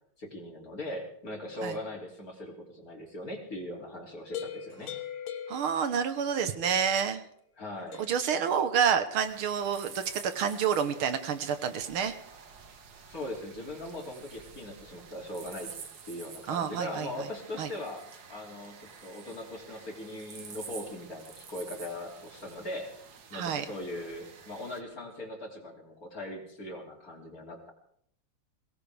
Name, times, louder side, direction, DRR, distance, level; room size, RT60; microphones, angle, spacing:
voice 1, 0.2-4.9 7.6-8.0 13.1-15.7 16.0-18.0 18.3-22.9 23.3-27.7, left 1 dB, 40° left, 0 dB, 3.5 m, -40 dB
sound 1, 4.3-6.3 6.6-7.1 7.9-8.3, left 8 dB, 80° left, 2.1 m, -41 dB
voice 2, 5.5-7.2 8.0-12.2 16.5-17.3 17.6-17.7 23.3-23.7, right 7 dB, 80° right, 9 dB, 2.0 m, -29 dB
sound 2, 9.2-24.8, right 6 dB, 50° right, 1.7 m, -49 dB
22.5 x 18.0 x 3.5 m, 0.70 s
omnidirectional pair, 2.3 m